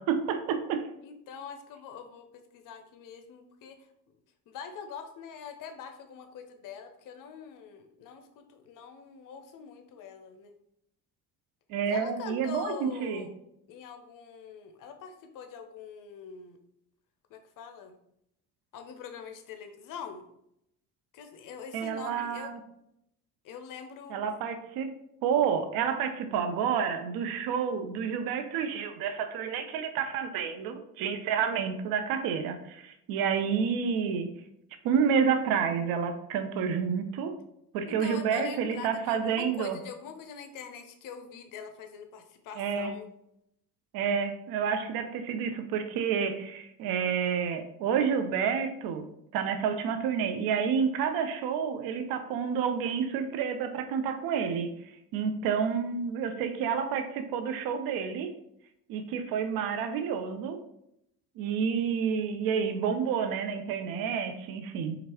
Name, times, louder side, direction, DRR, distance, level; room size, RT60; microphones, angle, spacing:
voice 1, 0.0-0.9 11.7-13.3 21.7-22.6 24.1-24.9 25.2-34.3 34.8-37.3 37.7-39.8 42.6-43.0 43.9-54.7 55.1-58.3 58.9-60.6 61.4-65.0, right 7 dB, 45° right, 8 dB, 0.6 m, -29 dB
voice 2, 1.0-2.3 2.5-3.8 4.5-10.5 11.8-13.3 13.7-16.6 17.3-18.0 18.7-20.3 21.1-22.5 23.4-24.4 37.9-43.1, left 6 dB, 40° left, 7 dB, 0.6 m, -44 dB
4.4 x 2.5 x 2.9 m, 0.78 s
figure-of-eight pair, 45°, 49 cm